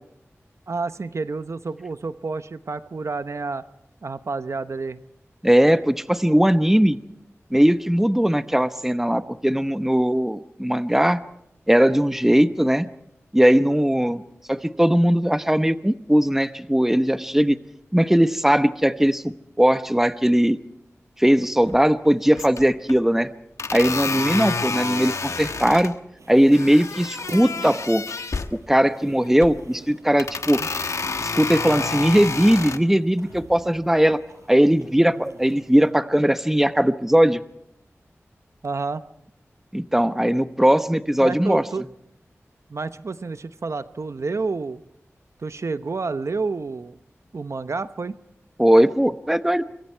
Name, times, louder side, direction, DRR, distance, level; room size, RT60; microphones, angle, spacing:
voice 1, 0.7-3.6 4.0-5.0 24.1-24.4 30.6-30.7 38.6-39.0 41.2-41.9 42.7-44.8 45.4-47.0 47.3-48.1, right 4 dB, 70° right, 12 dB, 0.9 m, -29 dB
voice 2, 5.4-7.0 7.5-11.2 11.7-12.9 13.3-14.2 14.5-17.6 17.9-19.2 19.6-20.6 21.2-23.3 23.7-25.9 26.3-28.3 28.5-30.6 31.2-34.2 34.5-37.4 39.7-41.6 48.6-49.6, equal, 5° right, 11 dB, 1.0 m, -19 dB
sound 1, 21.6-22.1 22.4-23.0 23.6-25.9 26.5-28.5 29.2-29.7 30.2-32.8, left 4 dB, 90° left, 1.1 m, -29 dB
sound 2, 26.2-35.9, right 2 dB, 90° right, 6.0 m, -47 dB
26.0 x 22.5 x 4.6 m, 0.79 s
wide cardioid pair, 60°, 5 cm